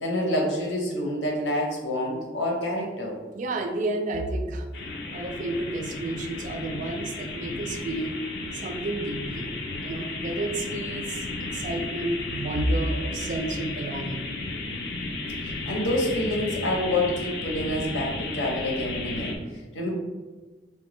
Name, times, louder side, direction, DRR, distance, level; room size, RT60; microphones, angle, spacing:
voice 1, 0.0-3.1 15.4-19.9, left 1 dB, 85° left, -1 dB, 0.8 m, -28 dB
voice 2, 3.3-4.7 5.1-8.1 8.5-9.5 9.8-14.2, right 2 dB, 45° right, 6 dB, 0.3 m, -30 dB
sound 1, 4.7-19.4, left 2 dB, 65° left, 0.5 m, -34 dB
3.6 x 2.2 x 3.0 m, 1.3 s
head